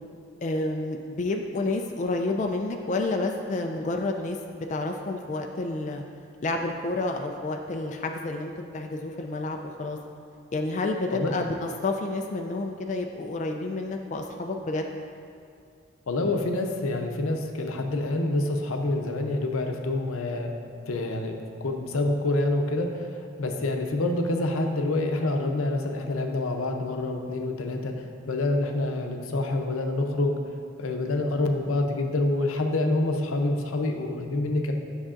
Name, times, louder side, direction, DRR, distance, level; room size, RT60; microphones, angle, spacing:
voice 1, 0.4-6.0 6.4-10.0 10.5-15.0, left 2 dB, 35° left, 3 dB, 0.3 m, -30 dB
voice 2, 16.1-20.5 20.9-30.4 30.8-34.7, left 2 dB, 90° left, 4 dB, 0.6 m, -27 dB
9.8 x 6.3 x 2.5 m, 2.4 s
head